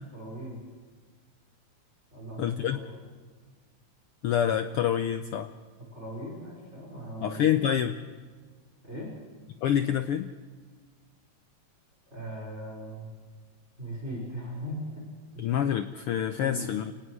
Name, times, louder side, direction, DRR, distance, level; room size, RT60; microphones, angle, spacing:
voice 1, 0.1-0.6 2.1-3.0 5.9-7.4 8.8-9.1 12.1-13.1 13.8-15.1 15.3-15.5 16.4-16.7, equal, 20° right, -2 dB, 5.3 m, -39 dB
voice 2, 2.4-2.8 4.2-5.5 7.2-8.0 9.6-10.3 15.4-16.9, left 10 dB, 85° left, 9 dB, 1.2 m, -27 dB
29.5 x 18.5 x 4.8 m, 1.5 s
omnidirectional pair, 3.4 m